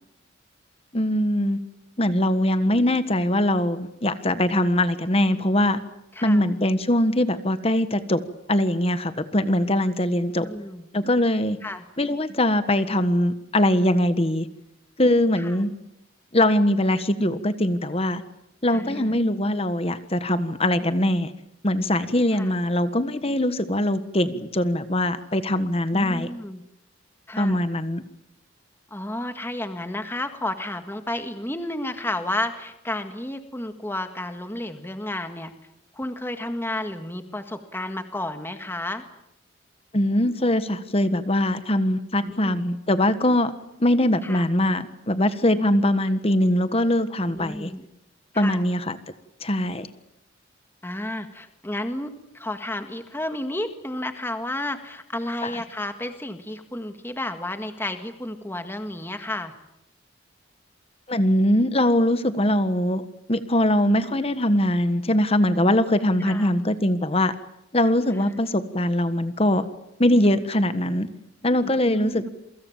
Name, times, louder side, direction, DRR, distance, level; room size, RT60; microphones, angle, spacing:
voice 1, 0.9-1.6 2.0-5.8 6.2-8.2 8.5-10.4 10.9-11.6 12.0-14.5 15.0-15.7 16.3-18.2 18.6-21.3 21.6-26.3 27.4-28.0 39.9-43.5 43.8-47.7 48.3-49.0 49.4-49.9 55.4-55.5 61.1-63.0 63.3-67.3 67.7-69.7 70.0-71.1 71.4-72.3, left 1 dB, 30° left, 11 dB, 1.5 m, -22 dB
voice 2, 6.1-6.5 10.4-10.9 11.6-11.8 15.4-15.5 18.7-19.2 22.3-22.5 25.9-26.6 27.3-27.6 28.9-35.5 35.9-39.0 42.2-42.6 44.2-44.5 47.3-47.9 48.3-48.6 50.8-59.5 66.2-66.5 71.6-72.3, left 1 dB, 10° left, 8 dB, 1.7 m, -32 dB
28.0 x 24.5 x 7.4 m, 0.83 s
head